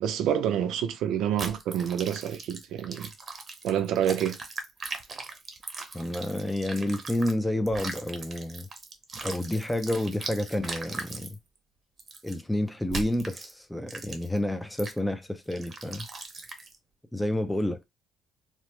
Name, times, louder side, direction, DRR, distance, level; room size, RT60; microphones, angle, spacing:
voice 1, 0.0-3.1 3.6-4.4 5.1-5.2, right 9 dB, 75° right, 0.5 m, -28 dB
sound 1, 1.4-7.3 7.7-11.3 12.0-12.4 12.9-13.5 13.9-14.4 14.8-15.0 15.5-16.8, right 3 dB, 30° right, 0.7 m, -39 dB
voice 2, 5.9-8.7 9.2-11.4 12.2-16.0 17.1-17.8, left 1 dB, 5° left, 0.4 m, -29 dB
2.9 x 2.0 x 3.1 m
cardioid pair, 110°, 0 cm